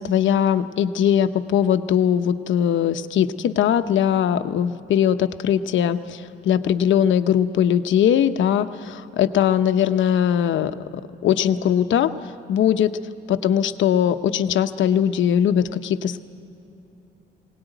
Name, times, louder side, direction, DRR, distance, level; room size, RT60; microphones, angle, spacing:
voice 1, 0.0-13.0 13.3-16.2, left 9 dB, 75° left, 10 dB, 0.9 m, -20 dB
20.0 x 18.0 x 9.2 m, 2.8 s
cardioid pair, 90°, 20 cm